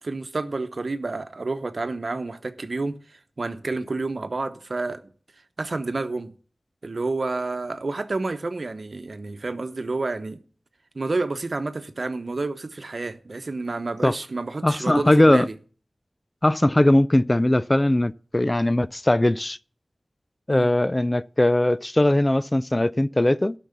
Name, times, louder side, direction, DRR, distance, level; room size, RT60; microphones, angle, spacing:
voice 1, 0.0-5.0 5.6-6.3 6.8-10.4 10.9-15.6 20.5-20.7, right 3 dB, 70° right, 0.9 m, -29 dB
voice 2, 14.6-15.5 16.4-19.6 20.5-23.5, left 1 dB, 30° left, 0.4 m, -20 dB
12.0 x 6.1 x 6.7 m
wide cardioid pair, 45°, 0 cm